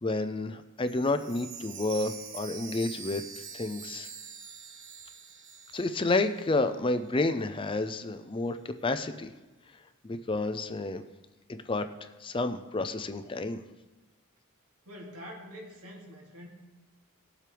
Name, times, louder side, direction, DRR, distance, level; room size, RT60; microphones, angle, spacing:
voice 1, 0.0-3.2 3.5-4.1 5.7-8.6 8.8-9.3 10.0-11.0 11.5-11.9 12.2-13.6, left 2 dB, 25° left, 9 dB, 0.5 m, -30 dB
Chime, 0.8-6.8 7.1-7.2 7.7-7.8, right 6 dB, 60° right, 1.1 m, -45 dB
voice 2, 14.8-16.5, equal, 80° right, -2 dB, 2.7 m, -45 dB
19.0 x 7.5 x 3.4 m, 1.2 s
head